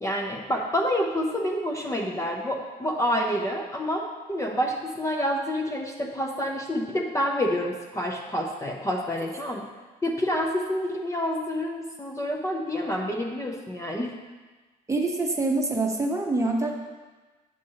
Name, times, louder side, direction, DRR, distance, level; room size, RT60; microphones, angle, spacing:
voice 1, 0.0-9.7 10.0-14.1, equal, 15° left, 0 dB, 0.7 m, -28 dB
voice 2, 14.9-16.7, right 2 dB, 15° right, 1 dB, 0.9 m, -25 dB
8.5 x 6.1 x 2.8 m, 1.3 s
cardioid pair, 110°, 17 cm